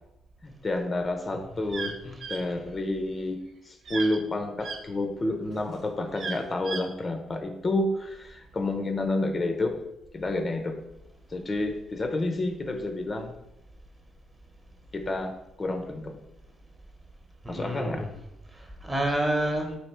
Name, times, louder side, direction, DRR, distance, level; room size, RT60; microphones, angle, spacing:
voice 1, 0.4-1.9 2.3-9.8 10.1-10.8 11.3-13.3 14.9-16.2 17.5-18.0, left 2 dB, 30° left, 5 dB, 0.5 m, -30 dB
sound 1, 1.7-1.9 2.2-2.4 3.9-4.2 4.6-4.8 6.2-6.8, right 4 dB, 60° right, 0.5 m, -34 dB
voice 2, 17.4-18.1 18.5-19.8, right 1 dB, 20° right, 3 dB, 0.7 m, -29 dB
3.2 x 2.7 x 4.3 m, 0.88 s
cardioid pair, 90°, 0 cm